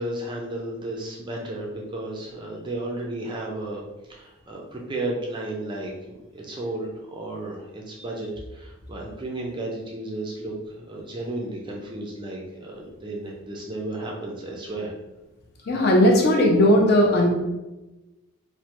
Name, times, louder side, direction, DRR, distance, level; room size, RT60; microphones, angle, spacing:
voice 1, 0.0-3.8 4.1-14.9, right 2 dB, 20° right, -1 dB, 0.3 m, -33 dB
voice 2, 15.7-17.3, left 1 dB, 45° left, 0 dB, 0.5 m, -17 dB
3.1 x 2.1 x 2.9 m, 1.0 s
head